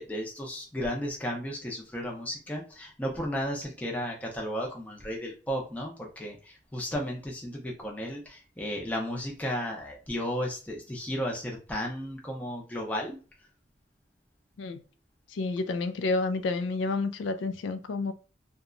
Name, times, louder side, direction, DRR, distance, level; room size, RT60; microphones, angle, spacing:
voice 1, 0.0-13.2, equal, 10° left, 0.5 m, -34 dB
voice 2, 15.3-18.1, left 3 dB, 80° left, 0.3 m, -30 dB
2.8 x 2.2 x 2.4 m
head